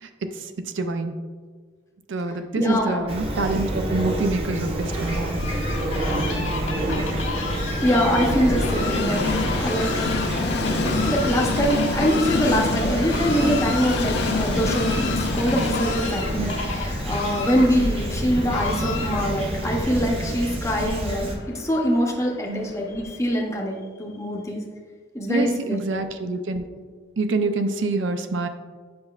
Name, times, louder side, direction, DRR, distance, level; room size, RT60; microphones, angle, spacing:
voice 1, 0.0-1.1 2.1-5.5 16.4-16.5 17.8-17.9 20.8-21.0 22.5-22.7 25.3-26.7 27.2-28.5, right 2 dB, 75° right, 8 dB, 0.5 m, -26 dB
voice 2, 2.6-3.1 7.8-10.2 11.1-24.6 25.1-26.1, equal, 15° left, 0 dB, 0.7 m, -24 dB
Fowl / Chirp tweet, 3.1-21.4, right 1 dB, 30° right, 0.6 m, -28 dB
Fowl, 4.8-19.5, left 3 dB, 90° left, 1.5 m, -32 dB
Train, 5.1-23.1, left 4 dB, 60° left, 0.5 m, -30 dB
7.7 x 5.3 x 2.3 m, 1.5 s
head